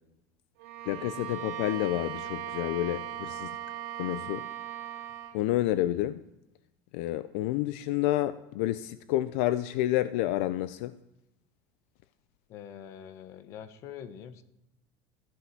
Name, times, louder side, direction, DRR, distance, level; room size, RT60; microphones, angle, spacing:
Bowed string instrument, 0.6-5.4, right 11 dB, 85° right, 2.1 m, -38 dB
voice 1, 0.9-3.5 4.0-4.5 5.3-6.2 6.9-11.0, left 14 dB, 70° left, 0.5 m, -29 dB
voice 2, 3.3-3.9 12.5-14.4, left 9 dB, 40° left, 1.0 m, -45 dB
14.5 x 11.5 x 6.0 m
cardioid pair, 175°, 8 cm